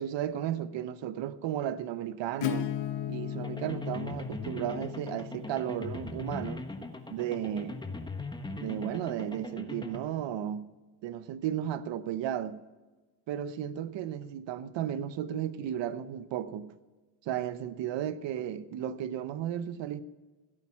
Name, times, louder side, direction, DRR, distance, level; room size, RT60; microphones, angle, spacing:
voice 1, 0.0-2.7 3.1-6.6 7.1-7.8 8.6-10.7 11.0-12.6 13.3-16.7 17.3-20.0, right 10 dB, 60° right, 0.9 m, -34 dB
Acoustic guitar / Strum, 2.4-7.9, left 9 dB, 60° left, 1.0 m, -37 dB
sound 1, 3.4-10.0, left 2 dB, 10° left, 1.3 m, -40 dB
16.0 x 8.6 x 5.7 m
cardioid pair, 90°, 48 cm